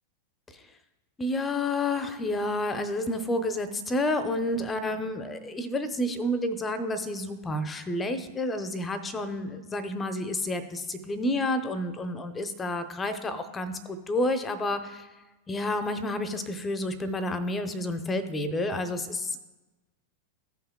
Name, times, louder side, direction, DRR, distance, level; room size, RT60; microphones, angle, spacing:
voice 1, 1.2-15.1 15.5-19.4, left 1 dB, 15° left, 10 dB, 0.8 m, -30 dB
15.5 x 5.7 x 2.2 m, 1.1 s
figure-of-eight pair, 90°, 0 cm